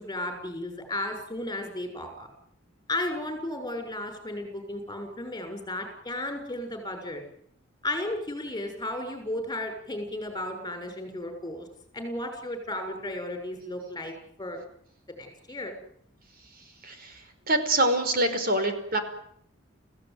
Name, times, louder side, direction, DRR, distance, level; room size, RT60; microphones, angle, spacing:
voice 1, 0.0-2.3 2.9-7.2 7.8-11.7 11.9-14.6 15.1-15.7, left 1 dB, 20° left, 6 dB, 6.7 m, -34 dB
voice 2, 16.5-19.0, right 1 dB, 50° right, 7 dB, 5.1 m, -26 dB
27.0 x 16.5 x 9.5 m, 0.70 s
head